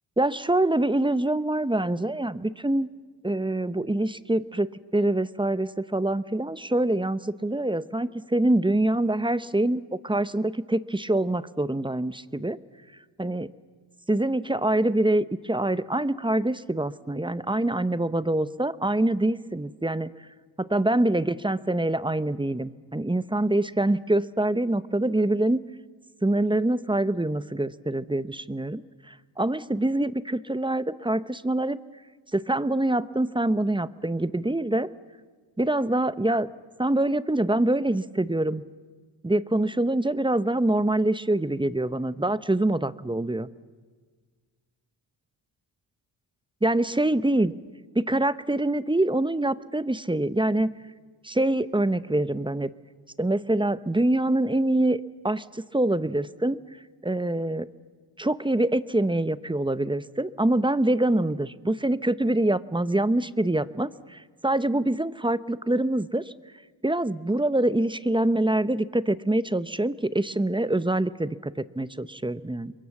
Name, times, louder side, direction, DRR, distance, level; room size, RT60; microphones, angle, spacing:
voice 1, 0.2-2.9 3.2-12.6 13.2-13.5 14.1-20.1 20.6-25.6 26.2-31.8 32.3-34.9 35.6-36.5 36.8-38.6 39.2-43.5 46.6-47.5 47.9-50.7 51.2-52.7 53.2-56.6 57.0-57.7 58.2-66.2 66.8-72.7, right 1 dB, 10° right, 15 dB, 0.7 m, -25 dB
29.0 x 23.0 x 7.2 m, 1.5 s
cardioid pair, 80°, 49 cm